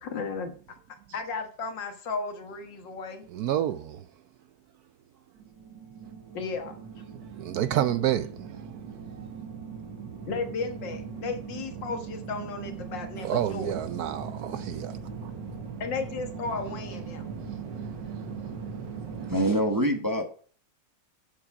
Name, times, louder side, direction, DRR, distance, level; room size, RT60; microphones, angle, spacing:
voice 1, 0.0-0.5 1.1-3.3 6.3-6.8 10.3-13.8 15.8-17.3, left 4 dB, 85° left, 2.0 m, -34 dB
voice 2, 3.3-4.1 7.3-9.4 13.2-15.3 17.3-19.3, right 11 dB, 70° right, 1.0 m, -31 dB
sound 1, 5.4-19.4, right 6 dB, 85° right, 2.2 m, -39 dB
voice 3, 19.1-20.3, right 1 dB, 15° right, 0.9 m, -25 dB
8.0 x 7.5 x 4.8 m
omnidirectional pair, 1.9 m